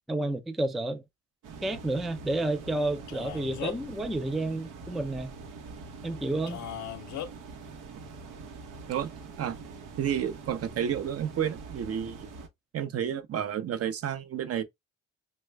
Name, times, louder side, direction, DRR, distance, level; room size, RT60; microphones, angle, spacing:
voice 1, 0.1-1.0 1.6-5.3 6.0-6.6, right 2 dB, ahead, 0.3 m, -30 dB
sound 1, 1.4-12.5, right 4 dB, 90° right, 0.8 m, -44 dB
Male speech man speaking, 3.1-4.0 6.5-7.3, left 10 dB, 70° left, 0.6 m, -38 dB
voice 2, 10.0-12.3 12.7-14.6, right 9 dB, 50° right, 0.6 m, -31 dB
3.1 x 2.2 x 3.2 m
cardioid pair, 90°, 30 cm